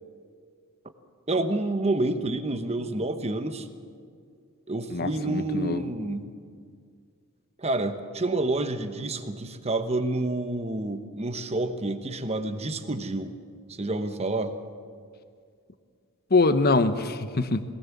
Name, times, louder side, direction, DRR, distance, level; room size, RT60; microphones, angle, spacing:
voice 1, 1.3-3.7 4.7-6.3 7.6-13.3 13.7-14.5, right 2 dB, 30° right, 9 dB, 1.1 m, -28 dB
voice 2, 4.9-5.9 16.3-17.6, left 3 dB, 45° left, 11 dB, 0.9 m, -24 dB
20.5 x 18.5 x 7.3 m, 2.2 s
head